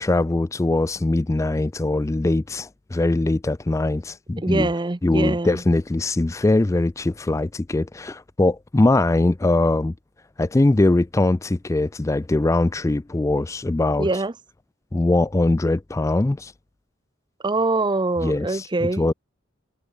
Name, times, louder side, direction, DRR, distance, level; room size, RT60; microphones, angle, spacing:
voice 1, 0.0-4.7 5.0-9.9 10.4-14.1 14.9-16.5 18.2-19.1, left 2 dB, 15° left, 0.3 m, -21 dB
voice 2, 4.4-5.6 14.0-14.3 17.4-19.1, right 2 dB, 25° right, 0.6 m, -24 dB
head